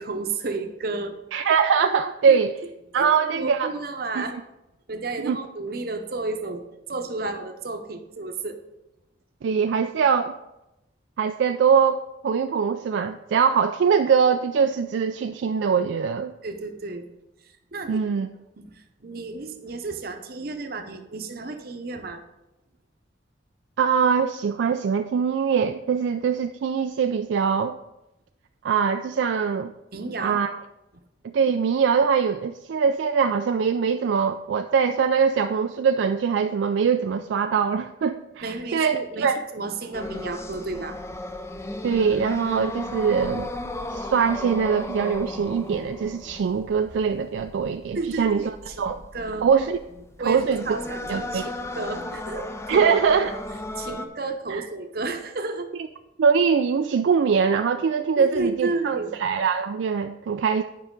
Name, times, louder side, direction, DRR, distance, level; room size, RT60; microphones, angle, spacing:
voice 1, 0.0-1.2 2.3-2.4 2.9-4.4 4.9-8.6 16.4-17.0 17.7-18.0 18.6-22.2 29.9-30.4 38.4-41.0 47.9-48.8 49.1-49.5 50.2-52.9 53.8-55.7 58.2-59.2, right 3 dB, 50° right, 6 dB, 0.8 m, -32 dB
voice 2, 1.3-2.5 2.9-3.7 4.2-4.3 5.2-5.4 9.4-10.4 11.2-16.3 17.9-18.3 23.8-27.8 28.6-29.7 30.2-30.5 31.2-39.4 41.8-43.5 43.9-49.0 49.4-49.8 50.2-50.6 51.1-51.4 52.7-53.4 54.5-54.6 56.2-60.6, right 6 dB, 70° right, 7 dB, 0.3 m, -22 dB
sound 1, 39.9-54.1, left 1 dB, 15° left, 0.4 m, -35 dB
9.5 x 5.5 x 3.8 m, 0.93 s
head